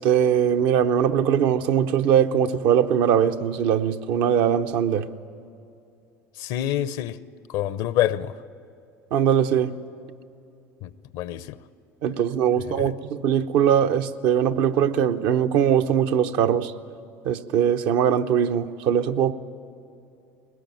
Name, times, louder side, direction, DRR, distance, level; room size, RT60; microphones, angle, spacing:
voice 1, 0.0-5.1 9.1-9.8 12.0-16.7 17.2-19.3, right 9 dB, 65° right, 8 dB, 0.8 m, -21 dB
voice 2, 6.4-7.2 7.5-8.3 10.8-11.6 12.8-12.9, left 12 dB, 65° left, 16 dB, 0.7 m, -26 dB
21.0 x 19.0 x 9.2 m, 2.6 s
hypercardioid pair, 80°, 8 cm